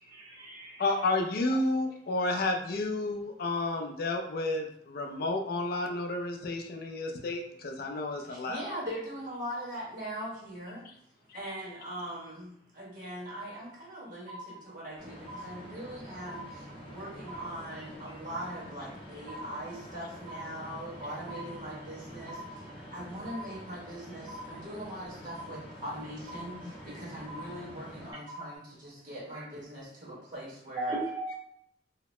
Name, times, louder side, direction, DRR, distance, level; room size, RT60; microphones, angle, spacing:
voice 1, 0.0-0.8 29.3-29.4 30.8-31.4, right 2 dB, 25° right, -7 dB, 0.6 m, -36 dB
voice 2, 0.8-8.7, left 2 dB, 60° left, 3 dB, 0.4 m, -31 dB
voice 3, 8.2-10.9 11.3-22.4 22.8-30.9, equal, 50° right, -5 dB, 1.3 m, -41 dB
sound 1, 13.3-13.9 14.3-14.9 15.3-15.9 16.3-16.9 17.3-17.9 18.3-18.9 19.3-19.9 20.3-20.9 21.3-21.9 22.3-22.9 23.3-23.9 24.3-24.9 25.3-25.9 26.3-26.9 27.3-27.9 28.3-28.6, equal, 90° right, 0.5 m, -45 dB
sound 2, 15.0-28.1, equal, 30° left, 0.8 m, -47 dB
2.7 x 2.0 x 3.1 m, 0.73 s
head